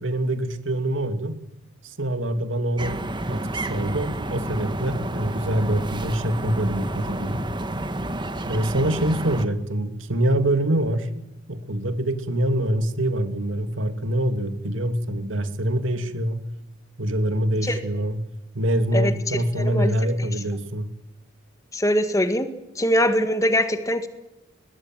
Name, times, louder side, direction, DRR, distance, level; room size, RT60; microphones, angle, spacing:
voice 1, 0.0-1.4 1.8-7.5 8.5-11.2 11.5-16.5 17.0-18.2 18.5-20.9, right 1 dB, 75° right, 8 dB, 2.7 m, -25 dB
sound 1, 2.8-9.5, right 1 dB, 25° right, 1.6 m, -30 dB
voice 2, 18.9-20.3 21.7-22.5 22.8-24.1, equal, 15° left, 8 dB, 1.9 m, -23 dB
22.0 x 21.5 x 9.3 m, 0.94 s
head